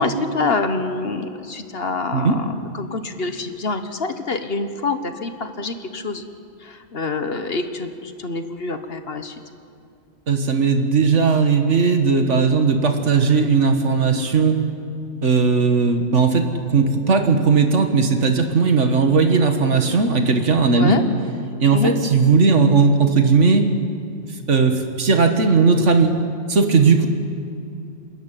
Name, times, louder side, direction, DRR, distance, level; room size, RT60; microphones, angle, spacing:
voice 1, 0.0-6.2 6.6-9.4 20.7-21.0 21.7-21.9, left 3 dB, 55° left, 8 dB, 1.5 m, -26 dB
voice 2, 10.3-14.6 15.2-21.0 21.6-23.7 24.5-26.2 26.5-27.1, right 4 dB, 75° right, 6 dB, 2.0 m, -17 dB
28.5 x 12.5 x 9.1 m, 2.5 s
omnidirectional pair, 1.2 m